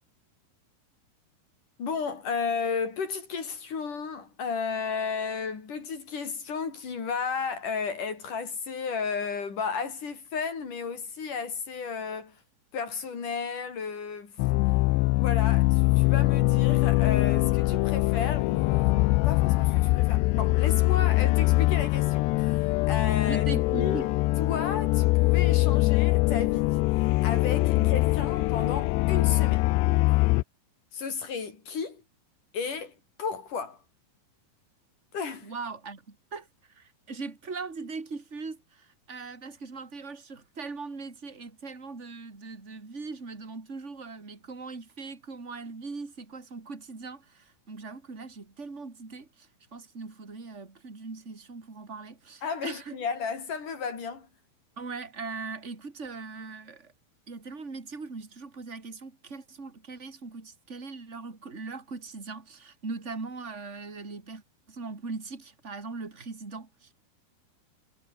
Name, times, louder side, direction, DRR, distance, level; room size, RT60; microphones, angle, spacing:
voice 1, 1.8-12.4 12.7-14.4 15.2-23.5 23.7-24.1 24.4-26.8 27.2-29.6 30.9-32.0 32.5-33.8 35.1-35.5 52.4-54.3, left 5 dB, 50° left, 5.8 m, -33 dB
sound 1, 14.4-30.4, left 22 dB, 90° left, 2.8 m, -23 dB
voice 2, 23.3-24.0 27.7-28.0 35.4-53.0 54.8-56.9 57.3-64.4 64.7-66.9, right 4 dB, 15° right, 3.3 m, -40 dB
omnidirectional pair, 4.9 m